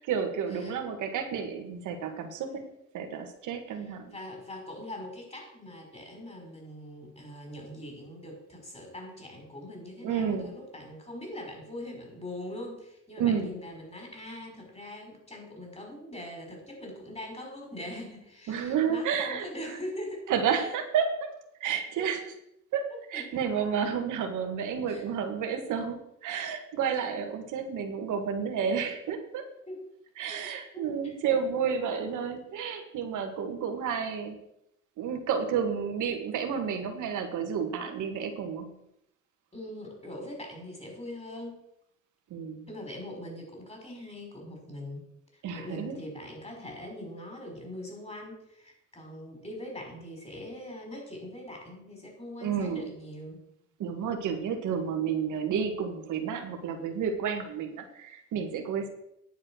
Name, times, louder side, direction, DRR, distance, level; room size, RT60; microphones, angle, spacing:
voice 1, 0.0-2.6 2.9-4.1 10.0-10.5 13.2-13.6 18.5-19.8 20.3-21.3 21.6-22.2 22.7-29.5 30.2-34.4 35.0-38.7 42.3-42.7 45.4-46.0 52.4-52.9 53.8-58.9, right 7 dB, 80° right, 5 dB, 1.7 m, -31 dB
voice 2, 4.0-20.3 22.0-22.1 22.9-23.4 24.9-25.0 29.7-29.8 30.3-31.1 39.5-41.6 42.7-45.0 45.3-53.4, left 1 dB, 20° left, 1 dB, 5.3 m, -42 dB
10.0 x 7.4 x 6.3 m, 0.79 s
cardioid pair, 90°, 30 cm